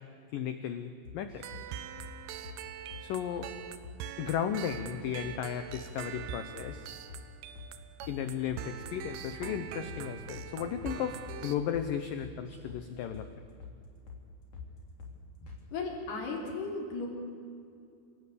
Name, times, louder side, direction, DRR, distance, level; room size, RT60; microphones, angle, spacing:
voice 1, 0.3-1.7 3.0-3.5 4.2-6.9 8.1-13.3, left 9 dB, 80° left, 9 dB, 2.0 m, -35 dB
sound 1, 1.0-1.7 2.0-2.1 2.4-2.6 2.9-3.1 3.4-3.5 3.8-4.0 4.3-4.5 4.8-5.4 5.7-5.9 6.2-6.3 6.6-6.8 7.1-7.3 7.6-7.7 8.0-8.2 8.5-9.1 9.4-9.6 9.9-10.0 10.3-10.5 10.8-11.0 11.3-11.4 11.7-11.9 12.2-12.8 13.1-13.3 13.6-13.8 14.1-14.2 14.5-14.7 15.0-15.2 15.5-15.6, left 5 dB, 35° left, 4.2 m, -46 dB
sound 2, 1.4-11.6, right 9 dB, 70° right, 2.8 m, -43 dB
voice 2, 15.7-17.1, left 3 dB, 60° left, 0 dB, 5.3 m, -35 dB
27.5 x 17.5 x 8.5 m, 2.4 s
omnidirectional pair, 5.2 m